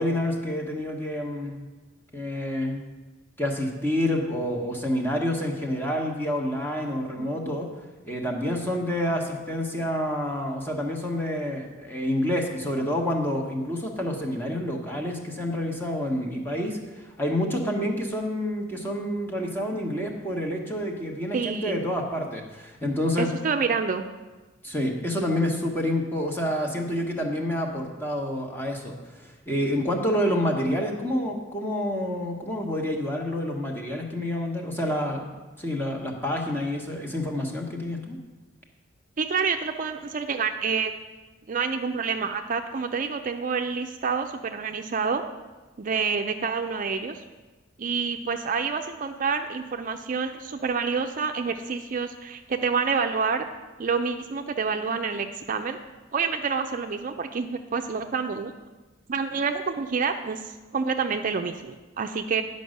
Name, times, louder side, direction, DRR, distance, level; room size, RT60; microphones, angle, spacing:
voice 1, 0.0-1.6 2.1-2.8 3.4-7.7 8.1-23.3 24.6-29.0 29.5-35.3 35.6-38.2, left 1 dB, 10° left, 0 dB, 1.2 m, -28 dB
voice 2, 21.3-21.8 23.2-24.0 39.2-40.9 41.5-45.2 45.8-47.2 47.8-53.5 53.8-55.8 56.1-58.5 59.1-62.4, right 5 dB, 45° right, 6 dB, 0.4 m, -28 dB
10.0 x 5.4 x 6.5 m, 1.2 s
head